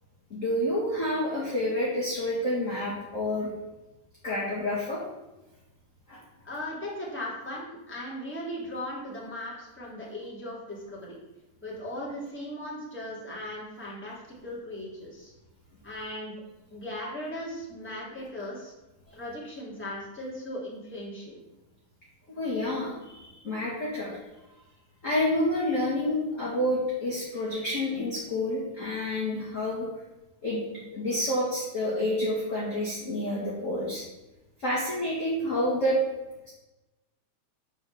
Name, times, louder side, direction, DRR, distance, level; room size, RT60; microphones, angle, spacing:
voice 1, 0.3-3.5 4.2-5.0 6.1-6.2 22.3-24.2 25.0-29.9 30.4-34.0 34.6-36.0, left 1 dB, 30° left, -6 dB, 2.1 m, -29 dB
voice 2, 6.4-11.2 11.6-15.3 15.8-16.3 16.7-18.7 19.1-21.4, left 1 dB, 5° left, -6 dB, 2.8 m, -38 dB
10.0 x 4.9 x 7.0 m, 1.0 s
omnidirectional pair, 3.4 m